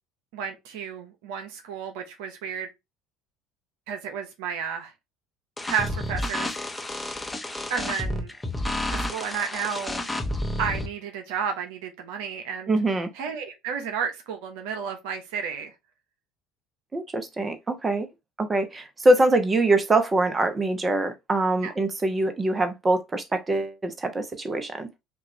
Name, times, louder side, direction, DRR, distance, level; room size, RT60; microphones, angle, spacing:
voice 1, 0.3-2.7 3.9-4.9 5.7-6.6 7.7-8.3 8.9-10.0 10.6-12.7 13.1-15.7 21.6-21.7, right 7 dB, 70° right, 1.0 m, -32 dB
sound 1, 5.6-10.9, left 1 dB, 10° left, 0.9 m, -30 dB
voice 2, 12.7-13.1 16.9-18.1 18.4-24.9, right 2 dB, 25° right, 1.1 m, -24 dB
5.8 x 2.7 x 3.2 m
hypercardioid pair, 65°, 0 cm